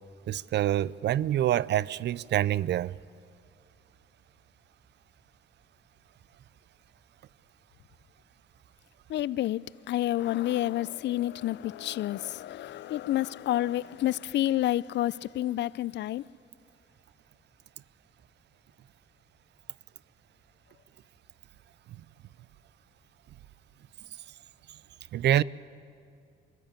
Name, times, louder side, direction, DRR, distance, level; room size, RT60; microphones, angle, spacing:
voice 1, 0.3-2.9 25.1-25.4, right 12 dB, 60° right, 0.4 m, -26 dB
voice 2, 9.1-16.2, left 14 dB, 65° left, 0.4 m, -29 dB
23.0 x 14.0 x 8.9 m
cardioid pair, 90°, 20 cm